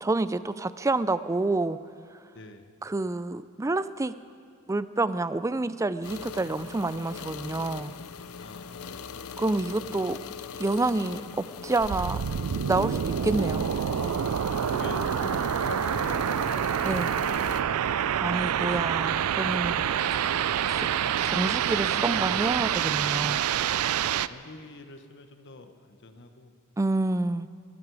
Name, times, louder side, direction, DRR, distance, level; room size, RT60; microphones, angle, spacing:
voice 1, 0.0-1.8 2.8-4.1 4.7-7.9 9.4-10.2 10.6-12.2 12.7-13.7 16.8-17.1 18.2-19.9 20.7-20.9 21.2-23.4 26.8-27.5, right 2 dB, 15° right, 15 dB, 0.3 m, -28 dB
voice 2, 2.3-2.7 8.4-9.4 9.9-10.2 14.5-15.4 15.7-16.3 16.8-17.8 24.1-26.5, left 2 dB, 55° left, 7 dB, 1.1 m, -45 dB
sound 1, 6.0-17.6, left 6 dB, 80° left, 0.7 m, -40 dB
sound 2, 11.8-24.3, right 9 dB, 80° right, 0.4 m, -27 dB
21.5 x 14.0 x 4.8 m, 2.4 s
head